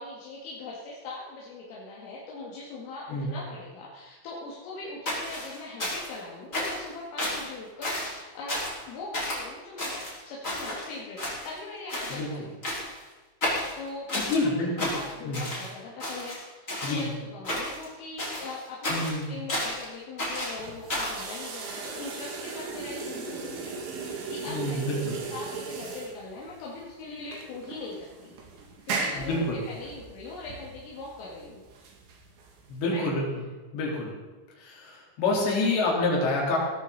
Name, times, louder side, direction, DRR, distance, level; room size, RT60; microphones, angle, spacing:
voice 1, 0.0-12.6 13.8-28.4 28.9-31.6 32.9-33.1 35.7-35.9, left 3 dB, 75° left, -5 dB, 4.8 m, -41 dB
sound 1, 5.1-6.2 6.5-6.9 7.2-7.5 7.8-8.2 8.5-8.8 9.1-9.4 9.8-10.9 11.2-11.6 11.9-12.2 12.6-13.0 13.4-14.4 14.8-15.7 16.0-17.0 17.4-17.9 18.2-19.8 20.2-21.2, left 1 dB, 15° left, 4.6 m, -32 dB
voice 2, 14.1-15.0 15.2-15.4 16.8-17.1 18.9-19.4 24.5-25.2 29.2-29.6 32.7-33.3 33.7-34.1 34.6-36.6, left 2 dB, 60° left, -3 dB, 5.9 m, -27 dB
sound 2, 20.5-33.0, right 4 dB, 65° right, 4.5 m, -37 dB
18.5 x 14.5 x 4.2 m, 1.3 s
omnidirectional pair, 6.0 m